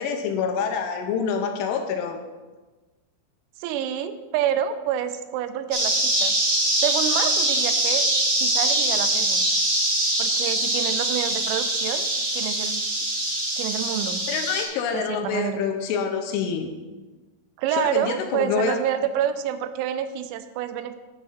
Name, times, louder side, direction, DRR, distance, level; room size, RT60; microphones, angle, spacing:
voice 1, 0.0-2.2 14.3-16.7 17.7-18.8, left 6 dB, 85° left, 4 dB, 3.1 m, -26 dB
voice 2, 3.6-6.4 6.8-8.1 8.4-9.4 10.2-12.1 12.3-12.8 13.6-14.2 14.9-15.6 17.6-21.0, right 10 dB, 85° right, 10 dB, 2.9 m, -28 dB
sound 1, 5.7-14.6, right 1 dB, 50° right, 1.2 m, -23 dB
10.5 x 3.6 x 7.2 m, 1.2 s
omnidirectional pair, 5.8 m